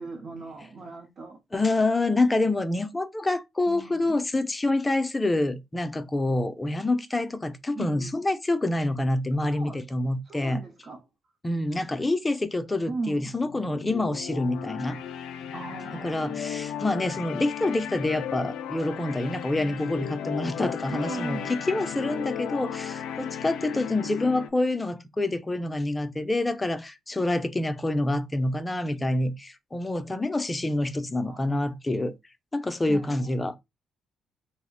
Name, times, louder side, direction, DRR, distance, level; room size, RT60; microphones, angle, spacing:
voice 1, 0.0-1.4 3.7-4.2 7.7-8.1 9.4-9.8 10.2-11.0 12.9-13.3 15.5-16.5 20.9-21.6 31.2-31.5 32.9-33.2, right 3 dB, 50° right, 0.7 m, -37 dB
voice 2, 1.5-10.6 11.4-15.0 16.0-32.1 32.5-33.5, left 2 dB, 20° left, 0.4 m, -27 dB
sound 1, 13.4-24.5, left 9 dB, 85° left, 0.3 m, -35 dB
2.4 x 2.1 x 3.7 m
cardioid pair, 90°, 0 cm